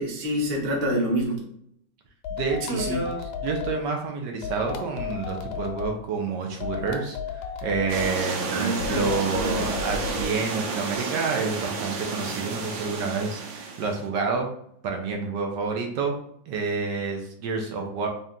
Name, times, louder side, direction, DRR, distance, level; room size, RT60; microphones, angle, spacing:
voice 1, 0.0-1.4 2.6-3.0 8.5-9.7, equal, 45° right, -1 dB, 0.7 m, -27 dB
sound 1, 2.2-3.8 4.4-5.9 6.6-8.1 8.8-10.3, left 6 dB, 80° left, 1.3 m, -33 dB
voice 2, 2.3-14.5 14.8-16.1 16.5-18.1, right 4 dB, 70° right, 2 dB, 1.2 m, -29 dB
sound 2, 7.9-14.0, right 4 dB, 85° right, 1.6 m, -31 dB
3.7 x 2.8 x 3.5 m, 0.72 s
omnidirectional pair, 2.3 m